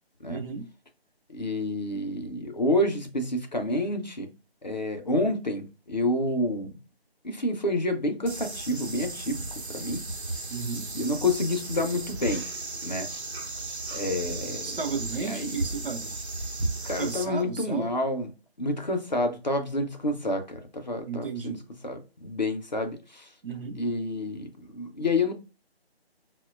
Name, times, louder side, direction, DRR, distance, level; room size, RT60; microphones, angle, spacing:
voice 1, 0.3-0.7 10.5-10.9 14.0-14.2 14.6-16.2 17.0-17.9 21.1-21.6 23.4-23.8, right 5 dB, 60° right, 0.6 m, -34 dB
voice 2, 1.3-4.3 4.6-6.8 7.2-9.4 9.7-10.1 10.9-12.4 12.8-13.1 13.9-14.8 15.2-15.6 16.8-18.3 18.6-21.6 21.8-23.3 23.8-25.3, left 1 dB, 45° left, 0.4 m, -29 dB
sound 1, 8.3-17.2, right 2 dB, 90° right, 0.8 m, -35 dB
3.9 x 2.1 x 2.2 m
figure-of-eight pair, 160°, 32 cm